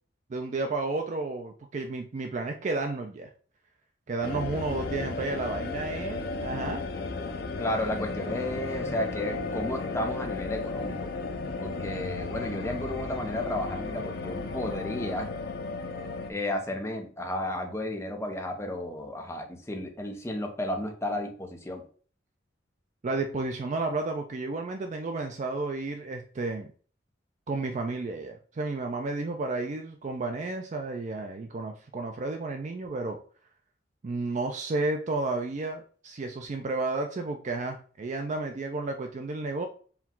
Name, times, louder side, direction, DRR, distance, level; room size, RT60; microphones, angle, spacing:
voice 1, 0.3-3.3 4.1-6.8 8.9-9.0 23.0-26.7 27.5-33.2 34.0-39.7, right 3 dB, 40° right, 4 dB, 0.4 m, -32 dB
sound 1, 4.2-16.3, left 3 dB, 55° left, 0.5 m, -34 dB
voice 2, 7.6-11.1 11.6-15.3 16.3-21.8, left 1 dB, 15° left, 3 dB, 0.7 m, -33 dB
4.6 x 2.3 x 3.7 m, 0.43 s
head